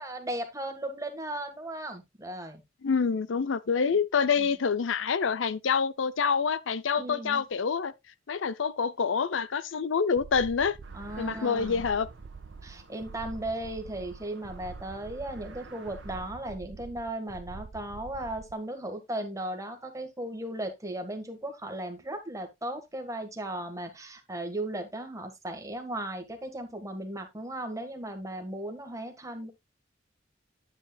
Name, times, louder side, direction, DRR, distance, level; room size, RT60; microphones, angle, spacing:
voice 1, 0.0-2.6 4.4-4.5 7.0-7.4 10.9-11.8 12.6-29.5, right 1 dB, 15° right, 1.6 m, -36 dB
voice 2, 2.8-7.9 8.3-10.8 11.2-12.1, left 6 dB, 85° left, 0.6 m, -27 dB
sound 1, 10.1-18.6, right 4 dB, 45° right, 0.4 m, -45 dB
sound 2, 10.8-16.3, right 3 dB, 70° right, 1.5 m, -53 dB
9.7 x 8.3 x 2.3 m
head